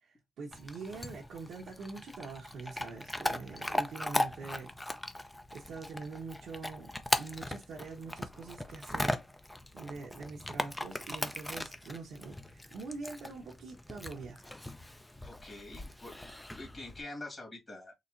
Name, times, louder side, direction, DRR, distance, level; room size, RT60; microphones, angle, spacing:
voice 1, 0.0-4.8 5.2-6.9 7.2-9.2 9.7-14.5, right 4 dB, 75° right, 0.9 m, -44 dB
Chewing mastication / Dog, 0.5-17.0, left 1 dB, 10° left, 0.5 m, -38 dB
voice 2, 15.2-16.3 16.6-17.9, left 2 dB, 30° left, 2.0 m, -45 dB
4.1 x 2.9 x 2.6 m
cardioid pair, 100°, 0 cm